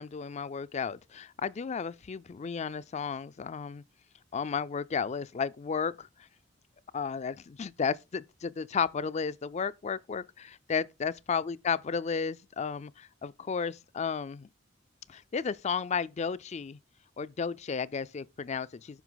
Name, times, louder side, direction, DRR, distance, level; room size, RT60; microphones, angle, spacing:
voice 1, 0.0-3.8 4.3-6.1 6.9-14.5 15.1-16.8 17.2-19.0, left 6 dB, 35° left, 0.4 m, -33 dB
9.3 x 5.8 x 3.9 m
head